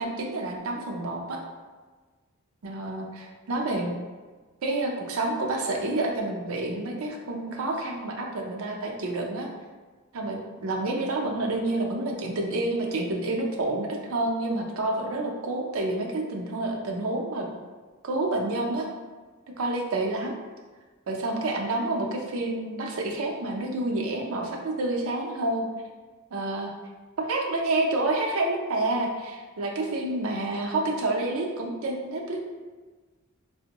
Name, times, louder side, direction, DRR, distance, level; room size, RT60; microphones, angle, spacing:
voice 1, 0.0-1.4 2.6-3.9 4.6-9.5 10.1-17.5 18.0-18.9 19.6-20.4 21.1-25.7 26.3-26.7 27.2-32.4, right 2 dB, 90° right, 1 dB, 0.5 m, -28 dB
4.2 x 2.1 x 2.8 m, 1.4 s
head